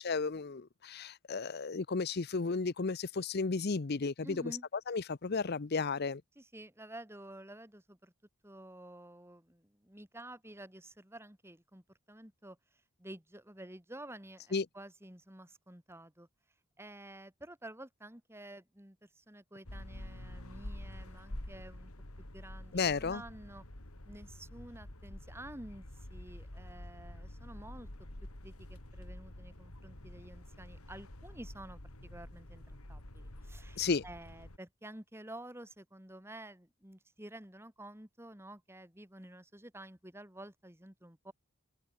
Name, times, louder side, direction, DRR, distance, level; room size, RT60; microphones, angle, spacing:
voice 1, 0.0-4.6 4.9-6.2 14.5-14.7 22.7-23.2 33.8-34.0, left 4 dB, 50° left, 0.6 m, -33 dB
voice 2, 4.2-4.7 6.4-8.1 8.4-12.6 13.0-16.3 16.8-21.9 22.3-23.6 24.1-25.8 26.1-27.9 28.4-41.3, right 1 dB, 10° right, 2.4 m, -50 dB
sound 1, 19.6-34.6, left 1 dB, 90° left, 3.2 m, -48 dB
open air
head